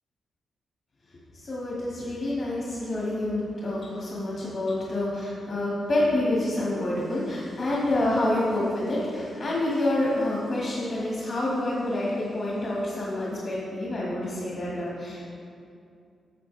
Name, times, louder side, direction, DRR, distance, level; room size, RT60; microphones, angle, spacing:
voice 1, 1.3-15.2, left 1 dB, 55° left, -6 dB, 2.0 m, -28 dB
10.5 x 6.9 x 3.4 m, 2.5 s
cardioid pair, 75°, 0 cm